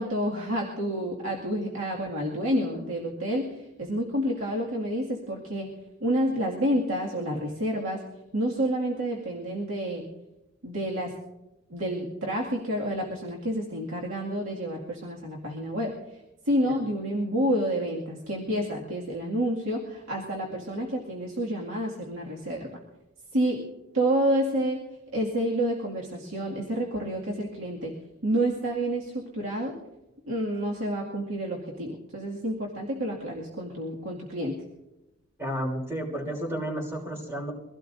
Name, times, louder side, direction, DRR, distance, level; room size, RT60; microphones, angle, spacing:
voice 1, 0.0-5.7 6.0-8.0 8.3-10.1 10.6-11.1 11.7-15.9 16.5-22.7 23.3-23.6 23.9-24.8 25.1-27.9 28.2-29.8 30.3-34.6, right 1 dB, 85° right, -3 dB, 2.2 m, -29 dB
voice 2, 35.4-37.5, equal, 15° right, -2 dB, 3.3 m, -31 dB
24.0 x 16.5 x 2.6 m, 0.97 s
head